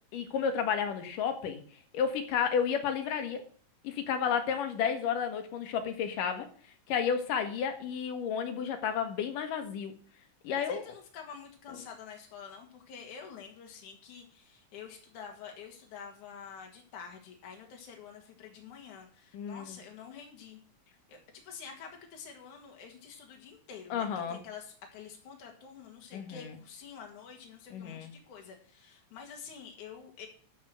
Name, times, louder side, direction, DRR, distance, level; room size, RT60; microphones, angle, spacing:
voice 1, 0.1-1.6 1.9-3.4 3.8-6.5 6.9-9.9 10.4-10.8 19.3-19.8 23.9-24.4 26.1-26.5 27.7-28.1, left 7 dB, 85° left, 7 dB, 3.0 m, -31 dB
voice 2, 10.5-20.6 21.1-30.3, left 7 dB, 65° left, 2 dB, 3.3 m, -48 dB
12.5 x 4.7 x 7.6 m, 0.43 s
omnidirectional pair, 3.8 m